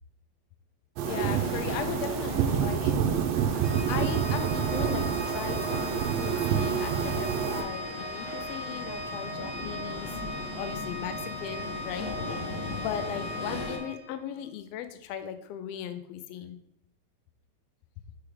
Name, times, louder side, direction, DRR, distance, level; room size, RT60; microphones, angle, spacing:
sound 1, 1.0-13.8, left 2 dB, 45° left, 1.4 m, -39 dB
sound 2, 1.0-7.6, right 8 dB, 75° right, 1.8 m, -28 dB
voice 1, 1.1-3.1 3.9-10.1 10.5-12.1 12.5-16.6, left 9 dB, 80° left, 9 dB, 1.5 m, -38 dB
Organ, 3.6-14.5, equal, 40° right, 1.2 m, -38 dB
6.9 x 4.5 x 3.5 m, 0.75 s
omnidirectional pair, 3.3 m